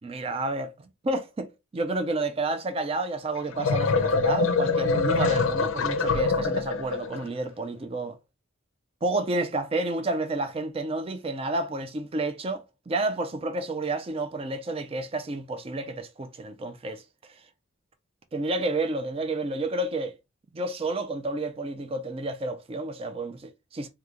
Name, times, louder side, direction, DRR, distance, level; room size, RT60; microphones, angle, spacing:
voice 1, 0.0-0.8 1.0-8.2 9.0-17.4 18.3-20.2 20.5-23.9, right 2 dB, 30° right, 0.4 m, -30 dB
sound 1, 3.4-7.2, left 4 dB, 70° left, 0.5 m, -24 dB
3.0 x 2.2 x 3.6 m
head